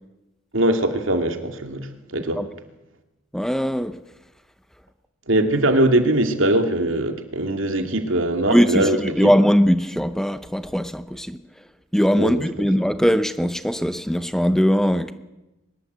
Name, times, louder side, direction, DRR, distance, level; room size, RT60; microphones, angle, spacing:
voice 1, 0.5-2.4 5.3-9.3 12.2-12.4, right 1 dB, 70° right, 6 dB, 2.5 m, -21 dB
voice 2, 3.3-4.0 8.5-11.6 11.9-15.1, equal, ahead, 10 dB, 0.8 m, -20 dB
23.5 x 20.5 x 8.1 m, 1.0 s
head